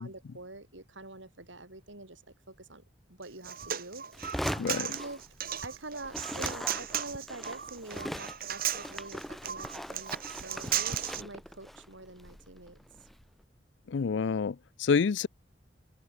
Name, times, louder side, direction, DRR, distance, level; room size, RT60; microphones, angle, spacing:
voice 1, 0.0-2.2 2.5-2.8 3.1-4.4 4.8-5.2 5.6-12.8, right 2 dB, 85° right, 7.6 m, -46 dB
Human voice, 3.2-11.2, right 10 dB, 50° right, 3.9 m, -35 dB
sound 1, 4.1-5.7 6.0-13.2, equal, ahead, 3.6 m, -41 dB
voice 2, 4.6-4.9 13.9-15.3, left 5 dB, 70° left, 0.4 m, -28 dB
head